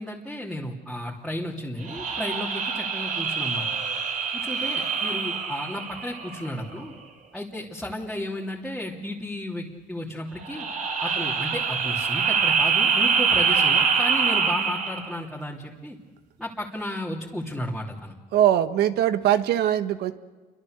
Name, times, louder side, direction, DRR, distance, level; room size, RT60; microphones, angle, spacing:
voice 1, 0.0-3.7 4.3-6.9 7.3-10.7 11.0-16.0 16.4-18.1, left 1 dB, ahead, -4 dB, 3.1 m, -33 dB
sound 1, 1.8-6.6 10.4-15.2, right 5 dB, 55° right, 4.1 m, -25 dB
voice 2, 18.3-20.1, right 11 dB, 75° right, 10 dB, 1.5 m, -21 dB
29.5 x 24.5 x 6.7 m, 1.3 s
cardioid pair, 110°, 17 cm